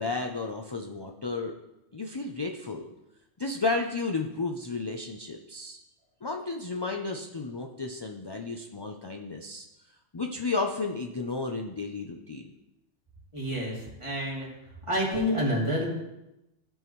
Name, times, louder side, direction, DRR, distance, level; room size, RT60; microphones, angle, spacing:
voice 1, 0.0-1.5 1.9-2.9 3.4-5.8 6.2-9.7 10.1-12.5, left 3 dB, 40° left, 3 dB, 0.3 m, -32 dB
voice 2, 13.3-13.7 14.0-14.5 14.9-15.9, equal, 25° right, -5 dB, 2.8 m, -28 dB
15.5 x 5.4 x 3.1 m, 0.93 s
omnidirectional pair, 1.3 m